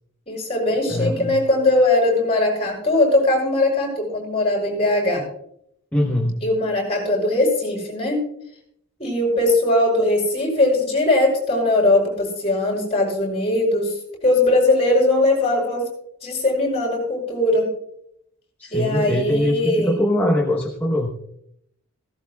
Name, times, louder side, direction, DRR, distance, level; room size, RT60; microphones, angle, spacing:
voice 1, 0.3-5.2 6.4-8.2 9.0-13.9 14.2-15.8 16.2-17.7 18.7-19.9, left 2 dB, 25° left, 0 dB, 6.6 m, -20 dB
voice 2, 0.9-1.4 5.9-6.4 18.6-21.1, left 1 dB, 10° left, 0 dB, 1.0 m, -22 dB
17.5 x 16.5 x 2.3 m, 0.71 s
head